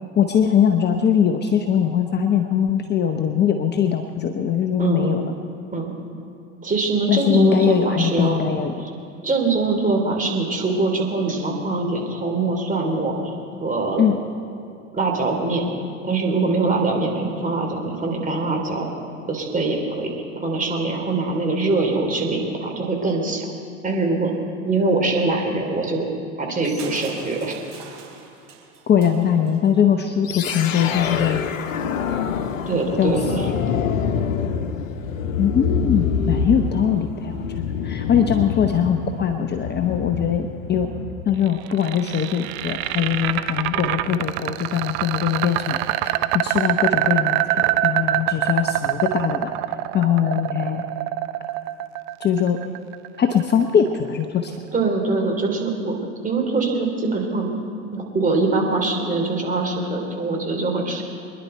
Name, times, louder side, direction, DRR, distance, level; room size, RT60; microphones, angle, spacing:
voice 1, 0.2-5.2 7.1-8.7 14.0-14.2 28.9-31.5 33.0-33.1 35.4-40.9 41.3-46.2 46.4-49.5 49.9-50.8 52.2-52.6 53.2-54.6, left 8 dB, 25° left, 6 dB, 0.9 m, -21 dB
voice 2, 4.8-5.2 5.7-5.9 6.6-8.5 8.8-8.9 9.2-13.3 13.6-14.1 14.9-15.7 16.0-18.9 19.3-23.5 23.8-24.3 24.6-26.1 26.4-27.6 32.7-33.5 54.7-55.9 56.2-57.5 57.9-61.0, right 3 dB, 20° right, 1 dB, 3.3 m, -23 dB
Crushing, 26.8-29.7, right 6 dB, 65° right, 4.3 m, -43 dB
sound 1, 30.2-41.4, left 6 dB, 75° left, 1.0 m, -26 dB
sound 2, 41.5-53.5, right 15 dB, 50° right, 0.7 m, -24 dB
25.0 x 11.0 x 4.5 m, 2.6 s
hypercardioid pair, 80°, 40 cm